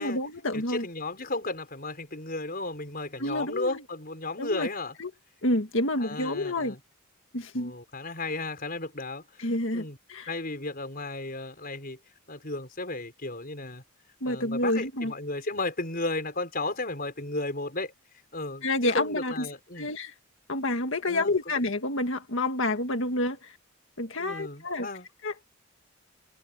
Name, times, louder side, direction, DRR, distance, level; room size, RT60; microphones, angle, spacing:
voice 1, 0.0-0.9 3.2-3.8 4.4-4.7 5.0-5.1 5.4-6.8 7.3-7.7 9.4-10.3 14.2-15.1 18.6-19.5 19.8-20.1 20.5-23.6 24.0-24.9 25.2-25.3, left 1 dB, 60° left, 1.9 m, -29 dB
voice 2, 0.5-4.9 6.0-6.8 7.5-10.0 10.3-12.0 12.3-13.8 14.3-17.9 18.3-19.9 21.1-21.3 24.2-25.1, left 2 dB, 40° left, 5.2 m, -34 dB
head